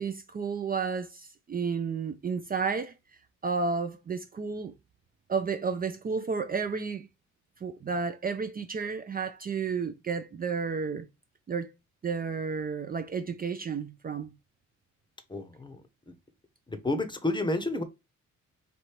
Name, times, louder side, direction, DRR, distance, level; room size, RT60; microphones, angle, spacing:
voice 1, 0.0-2.9 3.4-4.7 5.3-7.1 7.6-11.1 11.5-11.7 12.0-14.3, right 5 dB, 30° right, 0.5 m, -32 dB
voice 2, 15.3-15.8 16.1-16.2 16.7-17.8, left 2 dB, 15° left, 0.8 m, -30 dB
3.3 x 2.7 x 4.4 m
cardioid pair, 90°, 30 cm